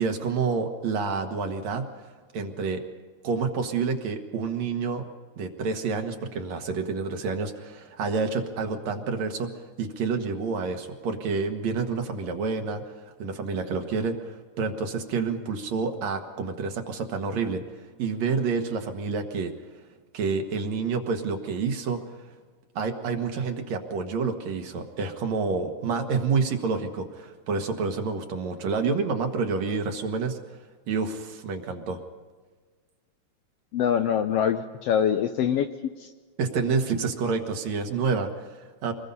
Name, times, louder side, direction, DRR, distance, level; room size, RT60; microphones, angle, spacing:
voice 1, 0.0-2.8 3.2-5.1 5.4-9.5 9.8-17.6 18.0-19.5 20.1-22.2 22.8-30.4 30.9-32.0 36.4-38.9, right 5 dB, 65° right, 5 dB, 2.6 m, -28 dB
voice 2, 33.7-35.7 36.0-36.1, left 8 dB, 75° left, 7 dB, 1.5 m, -24 dB
25.5 x 20.5 x 5.5 m, 1.4 s
omnidirectional pair, 3.4 m